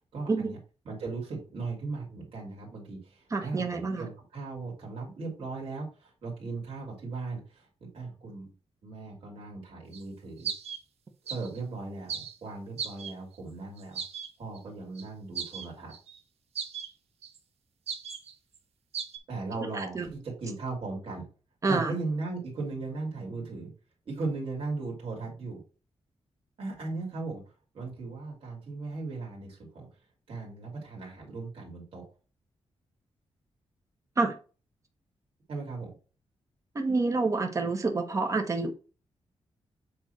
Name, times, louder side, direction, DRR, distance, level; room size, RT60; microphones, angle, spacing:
voice 1, 0.1-0.6 0.8-7.7 7.9-8.5 8.8-10.5 11.2-14.0 14.4-15.9 19.3-21.3 21.7-23.7 24.1-25.6 26.6-27.4 27.7-29.9 30.3-32.0 35.5-35.9, right 3 dB, 60° right, 2.8 m, -37 dB
voice 2, 3.3-4.1 19.8-20.1 21.6-21.9 34.2-34.3 36.7-38.7, right 3 dB, 30° right, 1.1 m, -28 dB
sound 1, 9.9-10.0 10.4-10.8 11.3-11.6 12.1-12.4 12.8-13.4 13.8-14.3 14.6-14.7 15.0-15.1 15.4-16.2 16.6-16.9 17.2-17.4 17.9-18.6 18.9-19.2, right 7 dB, 75° right, 0.9 m, -37 dB
7.4 x 3.4 x 4.4 m
wide cardioid pair, 160°, 11 cm